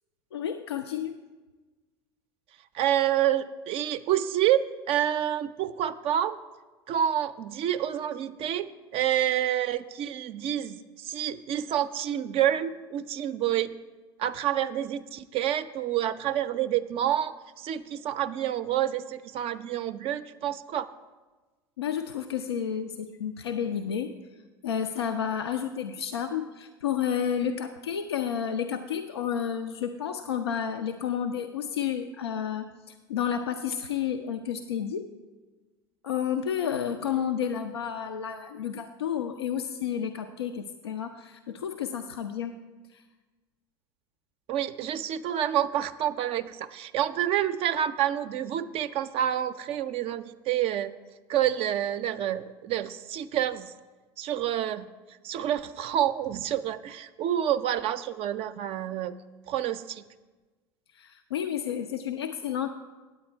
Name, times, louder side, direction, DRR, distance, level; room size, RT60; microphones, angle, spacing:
voice 1, 0.3-1.1 21.8-24.1 24.6-35.1 36.0-42.6 42.9-43.0 60.9-62.7, left 8 dB, 90° left, 7 dB, 0.4 m, -31 dB
voice 2, 2.7-6.4 6.9-13.7 14.2-20.9 44.5-50.9 51.3-53.7 54.2-54.9 55.2-59.1 59.5-60.0, right 11 dB, 50° right, 11 dB, 0.4 m, -28 dB
8.8 x 8.7 x 4.4 m, 1.3 s
hypercardioid pair, 75°, 13 cm